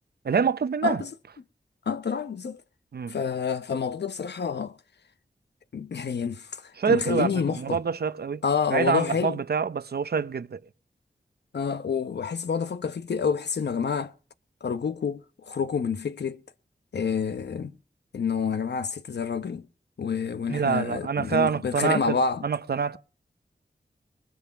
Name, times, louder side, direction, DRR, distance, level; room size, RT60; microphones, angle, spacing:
voice 1, 0.2-1.0 2.9-3.2 6.8-8.4 8.7-10.6 20.5-23.0, right 6 dB, 70° right, 0.7 m, -26 dB
voice 2, 1.9-2.6 3.1-4.8 5.7-7.8 8.4-9.4 11.5-14.1 14.6-16.4 16.9-17.7 18.1-19.7 20.0-22.4, left 6 dB, 90° left, 0.9 m, -28 dB
21.0 x 10.0 x 5.8 m
wide cardioid pair, 105°, 17 cm